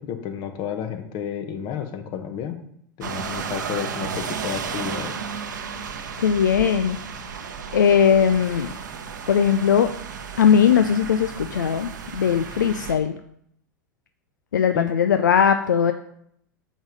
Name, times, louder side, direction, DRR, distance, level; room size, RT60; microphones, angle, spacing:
voice 1, 0.0-2.6 3.0-5.1 14.7-14.9, left 8 dB, 45° left, 7 dB, 1.3 m, -31 dB
sound 1, 3.0-13.0, right 6 dB, 75° right, 0.9 m, -33 dB
voice 2, 6.2-7.0 7.7-8.7 9.3-9.9 10.4-13.1 14.5-15.9, left 7 dB, 75° left, 8 dB, 0.4 m, -19 dB
7.2 x 6.0 x 5.3 m, 0.70 s
figure-of-eight pair, 85°, 10 cm